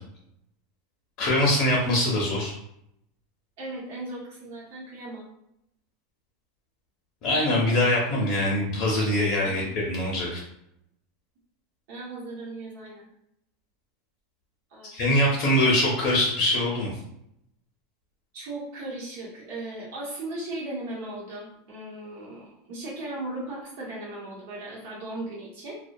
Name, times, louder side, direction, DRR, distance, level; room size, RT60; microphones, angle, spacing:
voice 1, 1.2-2.5 7.2-10.4 14.9-16.9, left 1 dB, 40° left, -3 dB, 0.5 m, -23 dB
voice 2, 3.6-5.2 9.4-9.7 11.9-13.1 14.7-15.2 18.3-25.8, right 2 dB, 60° right, -6 dB, 0.9 m, -37 dB
2.2 x 2.1 x 2.5 m, 0.79 s
supercardioid pair, 165°, 0 cm